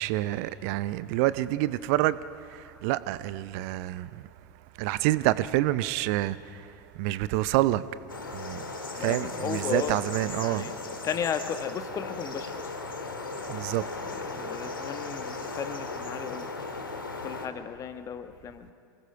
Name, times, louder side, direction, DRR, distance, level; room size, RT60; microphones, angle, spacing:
voice 1, 0.0-2.2 2.5-4.2 4.8-6.4 7.0-7.8 8.3-8.6 9.0-10.7 13.5-13.8, right 16 dB, 50° right, 0.6 m, -27 dB
sound 1, 8.1-17.5, left 3 dB, 80° left, 1.8 m, -37 dB
voice 2, 9.0-12.7 14.1-16.5 17.2-18.7, left 7 dB, 30° left, 1.2 m, -35 dB
27.5 x 19.5 x 4.9 m
figure-of-eight pair, 80°, 11 cm